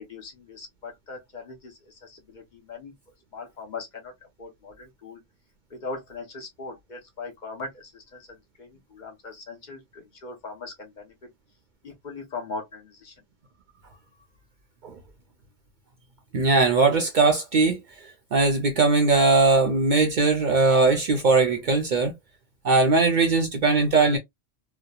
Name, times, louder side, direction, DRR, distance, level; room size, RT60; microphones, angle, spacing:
voice 1, 0.0-2.9 3.3-4.1 4.4-5.2 5.7-11.1 11.8-13.1, left 3 dB, 50° left, 0.8 m, -40 dB
voice 2, 16.3-17.8 18.3-22.1 22.6-24.2, right 3 dB, 55° right, 0.6 m, -20 dB
2.9 x 2.1 x 2.2 m
omnidirectional pair, 1.1 m